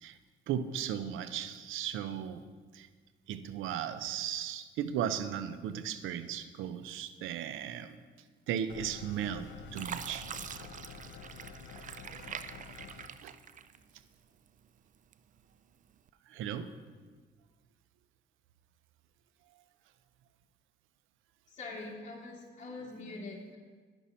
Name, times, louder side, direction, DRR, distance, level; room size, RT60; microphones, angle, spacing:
voice 1, 0.5-2.4 2.7-2.9 3.3-8.0 8.5-10.3 12.2-12.3 13.2-13.3 16.3-16.7, right 9 dB, 85° right, 12 dB, 0.6 m, -36 dB
sound 1, 8.7-13.1, left 5 dB, 75° left, 0.8 m, -49 dB
Fill (with liquid), 9.0-9.4 9.7-14.1 14.6-15.4 15.9-16.1, right 8 dB, 40° right, 0.4 m, -44 dB
voice 2, 21.5-23.6, left 3 dB, 35° left, -4 dB, 2.5 m, -44 dB
10.0 x 6.1 x 5.5 m, 1.5 s
cardioid pair, 90°, 20 cm